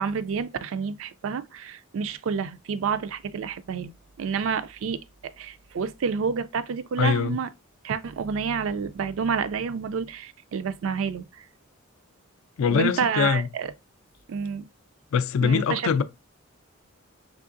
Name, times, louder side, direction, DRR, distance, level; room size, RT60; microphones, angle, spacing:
voice 1, 0.0-3.9 4.2-7.5 7.8-11.4 12.7-13.7 14.3-14.7 15.4-16.0, right 6 dB, 65° right, 0.3 m, -29 dB
voice 2, 7.0-7.4 12.6-13.5 15.1-16.0, left 6 dB, 70° left, 0.3 m, -23 dB
3.6 x 3.2 x 2.5 m
head